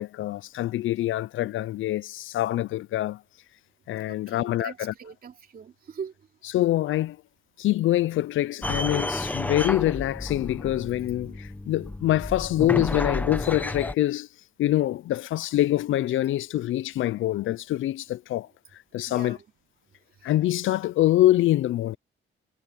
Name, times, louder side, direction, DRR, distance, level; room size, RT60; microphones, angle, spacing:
voice 1, 0.0-3.2 3.9-4.9 6.5-7.2 7.6-14.3 14.6-18.5 18.9-19.4 20.2-22.0, left 14 dB, 70° left, 0.4 m, -25 dB
voice 2, 4.1-6.1 19.1-19.4 20.2-20.3, right 7 dB, 45° right, 2.7 m, -41 dB
sound 1, 8.6-13.9, left 1 dB, 10° left, 0.8 m, -31 dB
wide cardioid pair, 165°, 21 cm